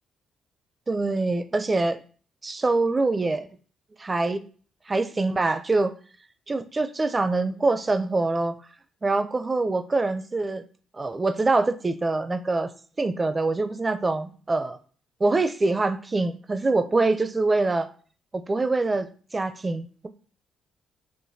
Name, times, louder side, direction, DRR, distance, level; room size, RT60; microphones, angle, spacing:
voice 1, 0.9-2.0 2.4-3.5 4.0-4.4 4.9-5.9 6.5-8.6 9.0-10.6 10.9-12.7 13.0-14.8 15.2-17.9 18.3-20.1, right 3 dB, 25° right, 11 dB, 0.4 m, -24 dB
5.7 x 2.5 x 2.7 m, 0.42 s
cardioid pair, 90°, 0 cm